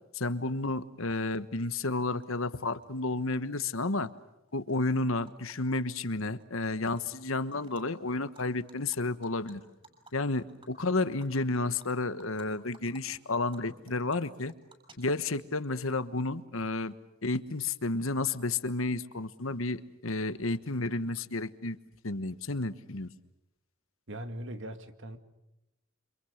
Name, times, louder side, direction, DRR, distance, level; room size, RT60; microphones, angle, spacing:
voice 1, 0.1-4.1 4.5-9.6 10.1-14.5 15.0-16.9 17.2-21.8 22.0-23.1, left 2 dB, 70° left, 1.4 m, -31 dB
Animal, 1.1-1.2 2.2-2.3 2.6-3.5 3.8-5.6 5.9-6.1 6.4-7.2 7.5-7.8 8.2-12.5 12.7-13.0 13.3-15.4, right 2 dB, 25° right, 7.7 m, -57 dB
voice 2, 24.1-25.2, right 1 dB, 60° right, 2.3 m, -40 dB
29.0 x 26.5 x 6.6 m
head